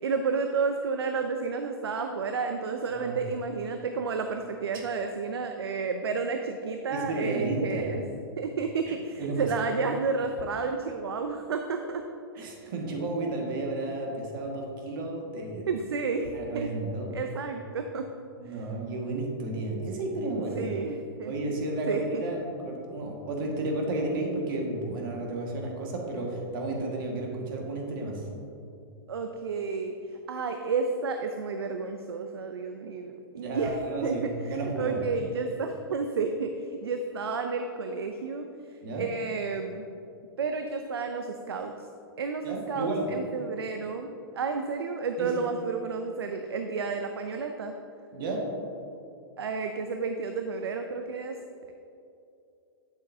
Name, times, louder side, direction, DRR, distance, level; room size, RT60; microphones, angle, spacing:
voice 1, 0.0-8.0 8.4-12.0 15.7-16.7 17.1-18.1 18.5-18.6 20.5-21.3 21.9-22.2 29.1-30.0 30.3-38.5 38.9-39.9 40.4-41.7 42.2-47.8 49.4-51.4, right 4 dB, 90° right, 6 dB, 0.5 m, -31 dB
voice 2, 6.9-7.8 8.9-9.4 12.4-15.7 16.3-17.1 18.4-20.6 21.2-28.3 33.4-35.0 38.8-39.0 42.4-43.0 45.2-45.4 48.1-48.5, right 2 dB, 60° right, 0 dB, 1.7 m, -32 dB
8.9 x 7.3 x 2.7 m, 2.6 s
hypercardioid pair, 120°, 13 cm